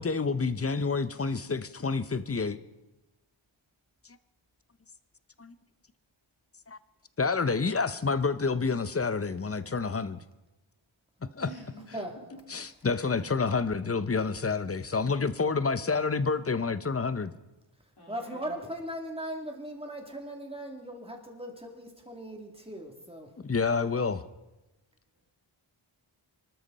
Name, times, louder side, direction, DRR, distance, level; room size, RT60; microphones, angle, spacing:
voice 1, 0.0-2.6 5.4-5.5 6.7-6.8 7.2-10.2 11.3-11.5 12.5-17.3 23.4-24.2, left 4 dB, 30° left, 14 dB, 0.7 m, -28 dB
voice 2, 11.4-12.4 12.9-13.1 18.0-18.6, equal, 50° left, -2 dB, 4.1 m, -47 dB
voice 3, 18.1-23.3, right 1 dB, 10° right, 2 dB, 2.8 m, -38 dB
25.0 x 13.0 x 4.1 m, 1.0 s
wide cardioid pair, 70°, 50 cm